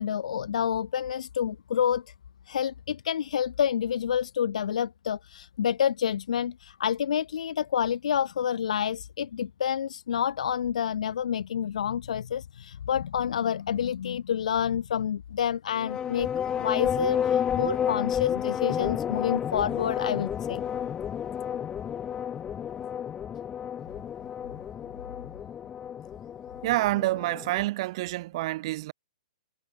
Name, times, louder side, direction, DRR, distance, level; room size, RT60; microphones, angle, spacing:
voice 1, 0.0-2.0 2.5-16.3 16.6-20.6, left 9 dB, 65° left, 1.0 m, -28 dB
sound 1, 15.8-27.7, left 9 dB, 20° left, 1.7 m, -31 dB
voice 2, 26.6-28.9, right 18 dB, 45° right, 1.1 m, -28 dB
hypercardioid pair, 125°, 4 cm